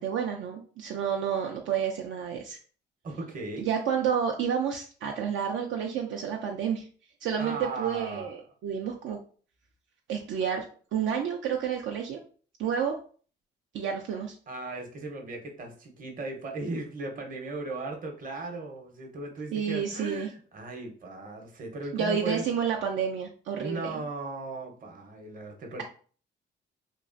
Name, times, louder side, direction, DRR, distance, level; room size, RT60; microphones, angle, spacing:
voice 1, 0.0-2.6 3.6-6.9 7.2-9.2 10.1-12.2 12.6-13.0 13.7-14.3 19.5-20.3 21.9-24.0, right 7 dB, 70° right, 1 dB, 0.4 m, -30 dB
voice 2, 3.0-3.7 7.4-8.3 14.5-22.5 23.6-25.8, right 2 dB, 45° right, 2 dB, 0.8 m, -37 dB
3.0 x 2.4 x 2.4 m, 0.42 s
cardioid pair, 90°, 20 cm